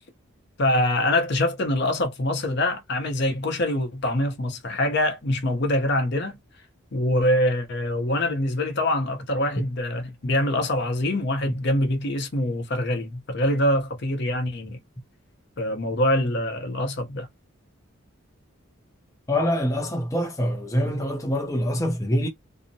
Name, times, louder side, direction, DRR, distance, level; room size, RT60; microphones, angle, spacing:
voice 1, 0.6-6.4 6.9-14.8 15.6-17.3, left 1 dB, 55° left, 0.7 m, -24 dB
voice 2, 19.3-22.3, equal, 15° left, 0.4 m, -25 dB
2.7 x 2.0 x 2.6 m
head